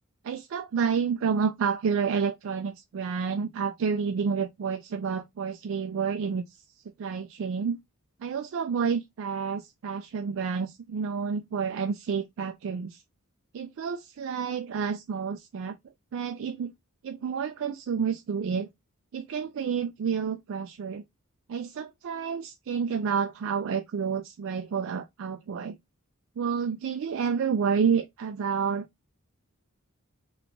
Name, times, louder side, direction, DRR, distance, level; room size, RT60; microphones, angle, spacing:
voice 1, 0.2-6.4 7.0-7.8 8.2-13.0 13.5-15.8 16.1-16.7 17.0-18.7 19.1-21.0 21.5-25.8 26.4-28.9, right 6 dB, 60° right, 0.3 m, -29 dB
2.9 x 2.3 x 3.6 m
head